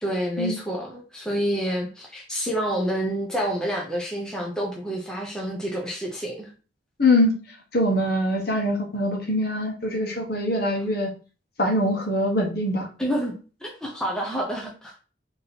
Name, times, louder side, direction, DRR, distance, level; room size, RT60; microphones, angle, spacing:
voice 1, 0.0-6.5 13.0-15.0, equal, 5° left, -2 dB, 0.7 m, -28 dB
voice 2, 7.0-7.3 7.7-11.1 11.6-12.9, left 1 dB, 50° left, 0 dB, 1.1 m, -23 dB
3.6 x 2.8 x 4.0 m, 0.36 s
head